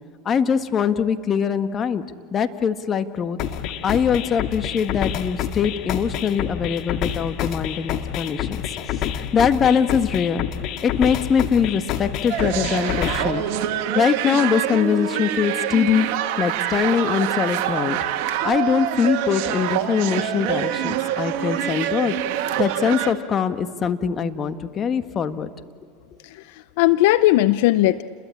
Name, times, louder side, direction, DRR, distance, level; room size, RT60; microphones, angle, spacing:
voice 1, 0.2-2.0 2.3-3.4 3.8-8.6 9.1-10.4 10.8-13.4 13.9-16.1 16.4-18.0 18.4-25.5, left 7 dB, 35° left, 9 dB, 1.6 m, -22 dB
sound 1, 3.4-13.4, left 10 dB, 55° left, 1.9 m, -28 dB
sound 2, 12.3-23.1, right 11 dB, 60° right, 2.0 m, -25 dB
voice 2, 26.2-28.0, left 16 dB, 70° left, 15 dB, 0.6 m, -18 dB
30.0 x 22.0 x 8.6 m, 2.3 s
hypercardioid pair, 95°, 0 cm